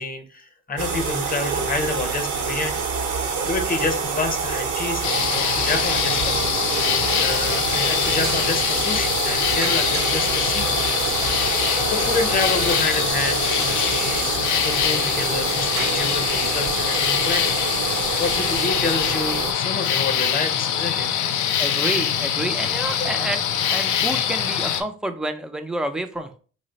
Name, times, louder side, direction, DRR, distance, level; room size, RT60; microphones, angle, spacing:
voice 1, 0.0-2.8 3.5-6.4 7.1-10.9 11.6-14.2 14.6-17.9 18.2-21.1 23.0-23.1, left 3 dB, 30° left, 7 dB, 0.7 m, -28 dB
sound 1, 0.8-19.5, right 5 dB, 80° right, 0.7 m, -26 dB
sound 2, 5.0-24.8, left 9 dB, 70° left, 0.5 m, -23 dB
sound 3, 7.0-16.3, right 5 dB, 50° right, 0.7 m, -38 dB
voice 2, 21.6-23.4 23.7-26.4, right 1 dB, 5° right, 6 dB, 0.3 m, -29 dB
3.1 x 2.1 x 3.9 m, 0.40 s
cardioid pair, 90°, 30 cm